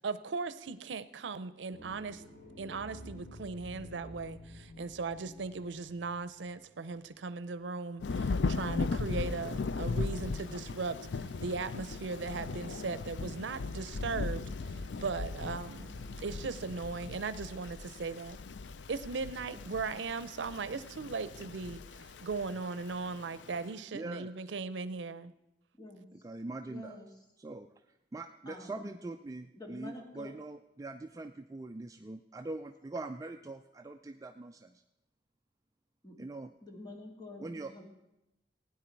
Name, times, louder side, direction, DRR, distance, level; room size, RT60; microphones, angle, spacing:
voice 1, 0.0-2.2 2.6-18.4 18.9-25.3, right 4 dB, 90° right, 14 dB, 0.6 m, -38 dB
sound 1, 1.7-7.4, equal, 55° left, 3.6 m, -51 dB
Thunder / Rain, 8.0-23.6, left 4 dB, 80° left, 0.5 m, -38 dB
sound 2, 9.2-16.8, right 2 dB, 65° right, 0.9 m, -57 dB
voice 2, 23.9-24.5 26.2-27.0 27.4-27.7 28.1-34.8 36.2-36.5 37.4-37.8, right 2 dB, 20° right, 7 dB, 0.4 m, -43 dB
voice 3, 25.8-26.1 26.7-27.1 28.5-29.0 29.5-30.3 36.0-36.2 36.6-37.8, left 2 dB, 25° left, 1 dB, 2.1 m, -48 dB
16.0 x 9.7 x 4.6 m, 0.92 s
head